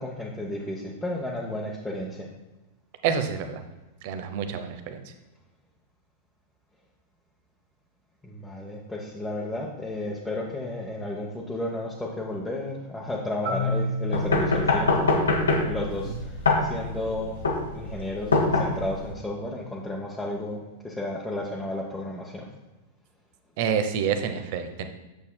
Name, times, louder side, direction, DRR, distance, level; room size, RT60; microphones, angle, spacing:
voice 1, 0.0-2.3 8.2-22.5, left 1 dB, 5° left, -4 dB, 1.0 m, -33 dB
voice 2, 3.0-3.6 4.0-5.0 23.6-24.9, right 7 dB, 55° right, 8 dB, 0.7 m, -27 dB
Marimba xylophone, 13.4-17.3, left 1 dB, 70° right, 1.7 m, -32 dB
sound 1, 14.1-19.1, left 3 dB, 80° left, 1.2 m, -24 dB
8.3 x 6.9 x 2.2 m, 1.1 s
figure-of-eight pair, 95°, 0 cm